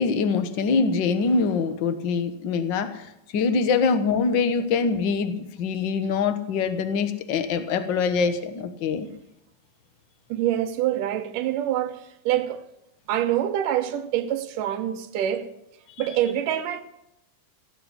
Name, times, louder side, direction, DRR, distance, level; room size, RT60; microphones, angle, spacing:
voice 1, 0.0-9.1, left 5 dB, 60° left, 1.2 m, -24 dB
voice 2, 10.3-12.6 13.1-15.5 16.0-16.8, right 11 dB, 85° right, 2.5 m, -25 dB
17.0 x 8.2 x 8.1 m
omnidirectional pair, 3.8 m